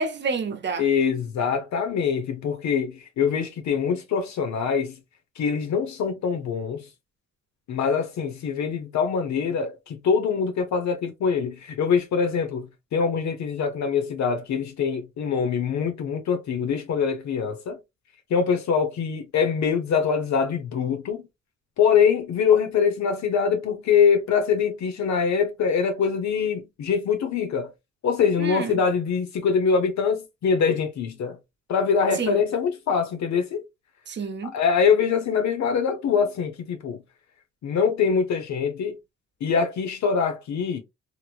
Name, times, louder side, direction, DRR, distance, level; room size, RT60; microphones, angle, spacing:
voice 1, 0.0-0.9 28.4-28.8 32.1-32.4 34.1-34.5, right 5 dB, 35° right, 0.8 m, -29 dB
voice 2, 0.8-4.9 5.4-6.8 7.7-17.8 18.3-21.2 21.8-27.7 28.0-31.4 31.7-33.6 34.5-37.0 37.6-39.0 39.4-40.8, left 6 dB, 65° left, 0.9 m, -24 dB
3.1 x 2.8 x 2.4 m
cardioid pair, 90°, 30 cm